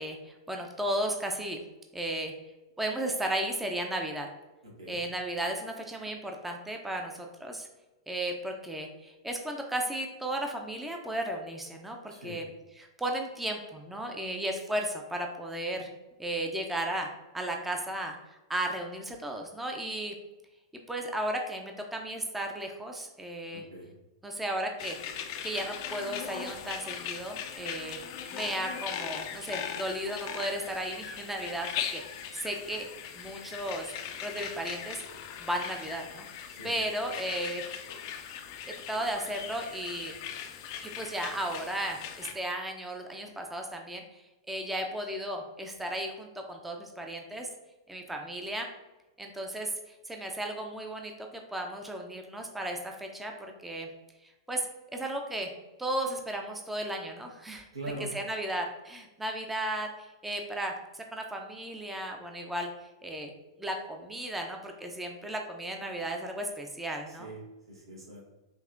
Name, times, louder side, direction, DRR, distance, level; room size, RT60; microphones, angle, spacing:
voice 1, 0.0-1.6 1.9-2.3 2.8-4.3 4.9-7.7 8.1-12.4 12.8-15.9 16.2-18.2 18.5-20.1 20.9-23.7 24.2-25.0 25.4-28.0 28.3-32.9 33.2-33.9 34.2-35.0 35.4-36.3 36.6-37.6 38.6-40.2 40.8-47.5 47.9-48.7 49.2-53.9 54.2-55.5 55.8-57.7 58.1-63.3 63.6-67.3, right 1 dB, 5° right, 2 dB, 0.5 m, -35 dB
voice 2, 4.6-5.0 12.1-12.4 23.5-23.9 36.5-36.7 57.7-58.1 67.1-67.4 67.7-68.2, right 2 dB, 85° right, -2 dB, 1.4 m, -42 dB
sound 1, 24.8-42.3, left 8 dB, 50° left, 0.5 m, -39 dB
5.3 x 2.8 x 2.5 m, 1.0 s
hypercardioid pair, 105°, 3 cm